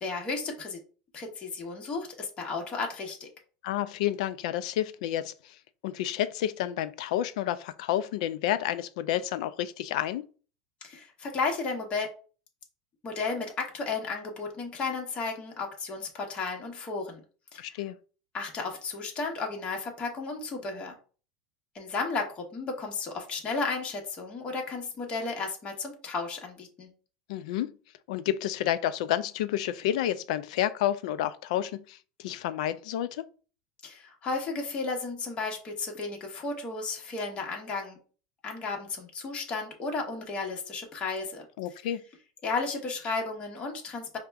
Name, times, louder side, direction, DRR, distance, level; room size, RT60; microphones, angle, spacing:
voice 1, 0.0-0.8 1.1-3.3 10.8-12.1 13.0-17.2 17.5-17.7 18.3-20.9 21.7-26.9 33.8-38.0 38.4-41.4 42.4-44.2, left 4 dB, 30° left, 1.0 m, -33 dB
voice 2, 3.6-5.6 5.8-10.2 17.6-18.0 27.3-27.7 28.1-33.2 41.6-42.0, left 12 dB, 75° left, 0.4 m, -30 dB
5.0 x 2.2 x 3.4 m
supercardioid pair, 135°, 4 cm